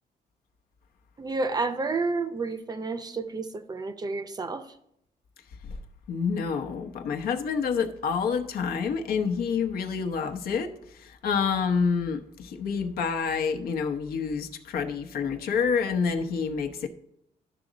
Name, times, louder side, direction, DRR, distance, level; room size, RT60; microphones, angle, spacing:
voice 1, 1.2-4.7, right 3 dB, 25° right, 10 dB, 0.6 m, -30 dB
voice 2, 6.1-10.7 11.0-16.9, left 6 dB, 75° left, 5 dB, 0.9 m, -28 dB
12.0 x 6.3 x 3.9 m, 0.75 s
cardioid pair, 135°, 16 cm